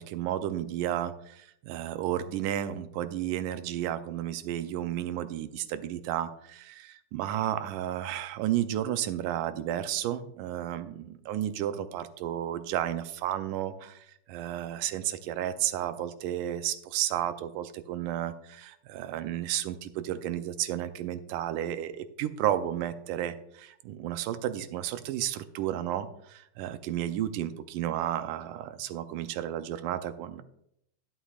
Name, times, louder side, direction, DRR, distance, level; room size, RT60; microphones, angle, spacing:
voice 1, 0.0-30.4, right 11 dB, 85° right, 11 dB, 2.2 m, -32 dB
11.0 x 11.0 x 2.4 m, 0.74 s
omnidirectional pair, 3.7 m